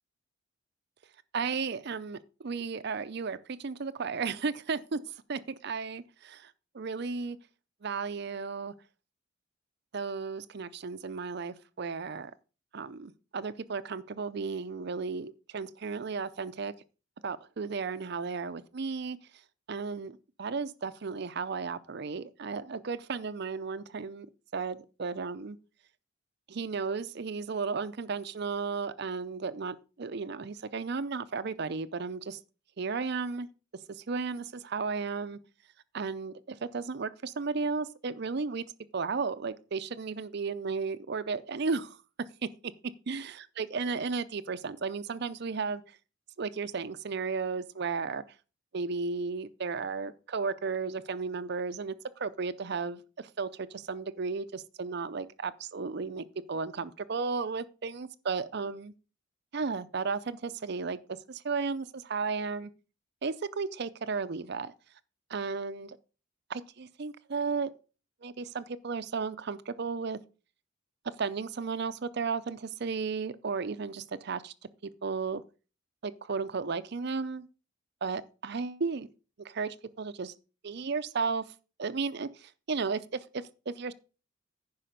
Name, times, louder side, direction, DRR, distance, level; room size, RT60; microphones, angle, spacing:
voice 1, 1.3-5.0 5.3-7.4 7.8-8.7 9.9-12.3 12.7-16.7 17.2-19.2 19.7-24.3 24.5-25.6 26.5-32.4 32.8-33.5 34.1-35.4 35.9-38.6 38.9-42.0 43.1-45.8 46.4-48.2 48.7-58.9 59.5-61.0 61.3-62.7 63.2-64.7 65.3-66.0 66.5-67.7 68.2-70.2 71.2-74.5 75.0-75.4 76.0-77.4 78.0-79.1 79.4-80.3 80.6-81.4 81.8-83.9, right 4 dB, 55° right, 0.5 m, -34 dB
10.0 x 5.5 x 5.2 m
head